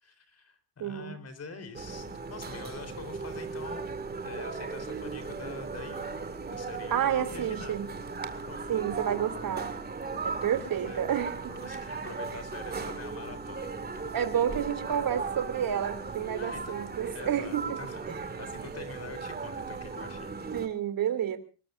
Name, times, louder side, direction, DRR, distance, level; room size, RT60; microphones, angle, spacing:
voice 1, 0.0-3.8 4.2-6.1 6.5-7.8 8.5-8.9 10.2-11.2 11.5-13.9 16.3-16.6 17.1-20.3, left 4 dB, 30° left, 12 dB, 3.9 m, -45 dB
voice 2, 0.8-1.1 6.9-7.9 8.7-9.7 10.2-11.3 14.1-17.8 20.5-21.4, right 9 dB, 45° right, 10 dB, 2.9 m, -30 dB
sound 1, 1.7-20.7, right 4 dB, 20° right, 2.1 m, -37 dB
25.5 x 21.5 x 2.5 m, 0.36 s
cardioid pair, 170°, 47 cm